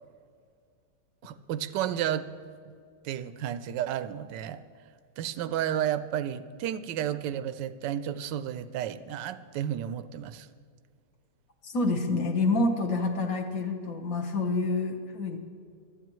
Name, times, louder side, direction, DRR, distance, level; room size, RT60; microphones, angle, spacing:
voice 1, 1.2-2.3 2.7-2.8 3.0-4.6 5.2-10.5, right 10 dB, 90° right, 13 dB, 1.2 m, -32 dB
voice 2, 11.6-15.4, left 2 dB, 60° left, 4 dB, 1.4 m, -27 dB
23.5 x 8.6 x 3.1 m, 2.2 s
omnidirectional pair, 1.9 m